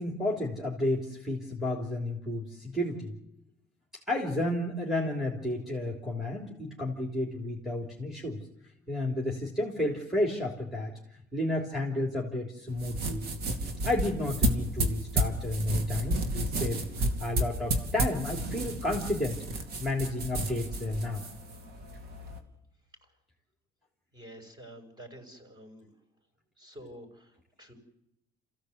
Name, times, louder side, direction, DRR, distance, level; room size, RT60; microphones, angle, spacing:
voice 1, 0.0-3.1 4.1-8.4 8.9-10.9 11.3-13.3 13.8-19.4 19.8-21.3, left 1 dB, ahead, -1 dB, 3.5 m, -31 dB
sound 1, 12.7-22.4, right 1 dB, 70° right, 2.9 m, -32 dB
voice 2, 24.1-25.9 26.6-27.7, equal, 25° right, 5 dB, 6.2 m, -49 dB
27.5 x 16.0 x 8.1 m, 0.85 s
cardioid pair, 110°, 17 cm